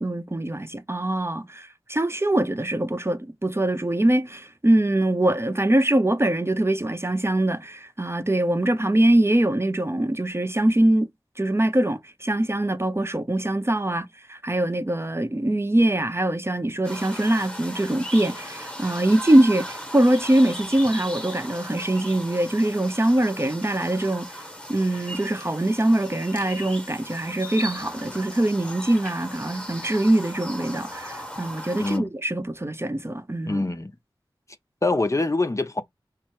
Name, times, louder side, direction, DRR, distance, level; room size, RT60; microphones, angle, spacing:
voice 1, 0.0-11.1 11.4-24.3 24.7-33.6, right 1 dB, 30° right, 0.7 m, -23 dB
sound 1, 16.8-32.0, equal, 10° left, 1.2 m, -37 dB
voice 2, 31.8-32.1 33.5-33.9 34.8-35.8, left 2 dB, 35° left, 0.7 m, -24 dB
5.6 x 2.0 x 4.6 m
wide cardioid pair, 55°, 9 cm